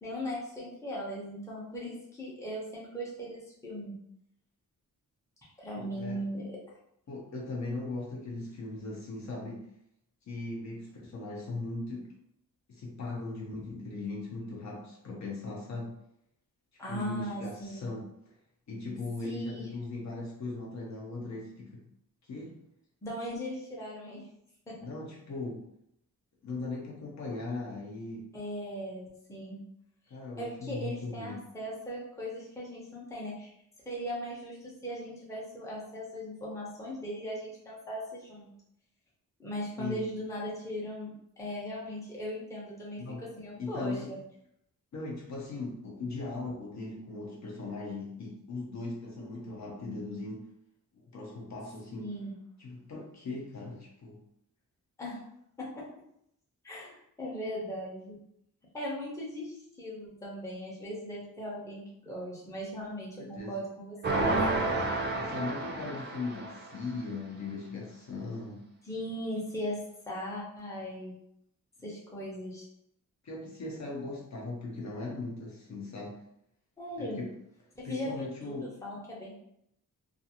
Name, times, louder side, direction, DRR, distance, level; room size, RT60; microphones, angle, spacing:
voice 1, 0.0-4.0 5.6-6.6 16.8-17.9 19.2-19.7 23.0-24.2 24.7-24.8 28.3-29.6 30.4-33.5 33.9-34.6 34.8-38.5 39.4-44.2 52.0-52.3 55.0-55.2 55.6-55.8 56.6-58.2 58.7-64.4 64.7-64.8 68.8-71.2 71.8-72.6 76.8-77.2 77.8-79.3, equal, 10° left, -5 dB, 0.6 m, -38 dB
voice 2, 5.8-6.2 7.1-9.6 10.3-12.1 12.7-16.0 16.9-18.0 18.7-21.9 22.3-22.6 24.8-25.6 26.4-28.3 30.1-31.4 39.8-40.0 43.0-43.2 43.6-44.2 44.9-50.4 51.1-52.1 52.6-54.2 63.2-63.5 65.2-68.6 73.2-76.2 77.0-77.3 77.8-78.7, left 3 dB, 55° left, -2 dB, 0.6 m, -39 dB
sound 1, 64.0-66.8, right 2 dB, 30° right, 0.4 m, -30 dB
2.4 x 2.4 x 2.8 m, 0.75 s
wide cardioid pair, 175°, 35 cm